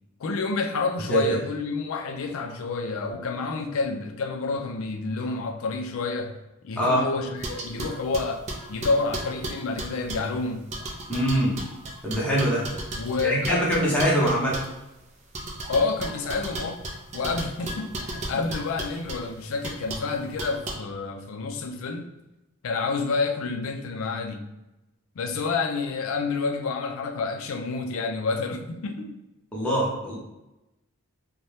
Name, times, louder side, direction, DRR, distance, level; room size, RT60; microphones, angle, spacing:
voice 1, 0.2-6.4 6.6-10.7 13.0-13.7 15.7-16.8 17.1-22.1 22.6-24.5 25.2-29.2, left 4 dB, 65° left, 5 dB, 0.4 m, -29 dB
sound 1, 7.4-10.3 10.7-14.8 15.3-19.2 19.6-20.1 20.4-20.8, right 1 dB, 30° right, 0.4 m, -35 dB
voice 2, 11.1-11.5 12.0-12.6 13.2-14.6 29.5-30.2, equal, 5° left, -6 dB, 0.8 m, -23 dB
2.7 x 2.2 x 3.2 m, 0.98 s
head